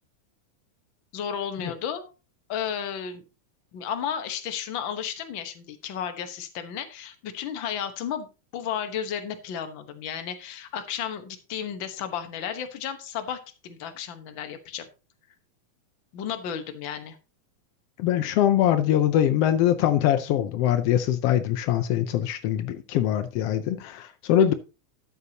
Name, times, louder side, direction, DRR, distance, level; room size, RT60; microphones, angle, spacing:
voice 1, 1.1-2.1 2.5-3.2 3.7-8.3 8.5-14.9 16.1-17.2 24.4-24.5, left 8 dB, 60° left, 1.3 m, -33 dB
voice 2, 18.0-24.5, left 11 dB, 90° left, 1.3 m, -23 dB
12.5 x 8.4 x 2.8 m
omnidirectional pair, 3.5 m